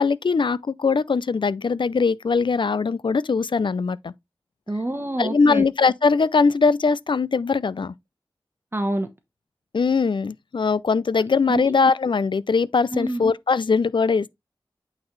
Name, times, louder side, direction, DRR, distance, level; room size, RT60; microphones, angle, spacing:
voice 1, 0.0-4.1 5.2-7.9 9.7-14.3, left 4 dB, 70° left, 0.4 m, -21 dB
voice 2, 4.7-5.6 8.7-9.1 11.5-11.6 12.9-13.2, right 1 dB, 25° right, 1.0 m, -26 dB
8.6 x 4.0 x 3.1 m
wide cardioid pair, 70°, 9 cm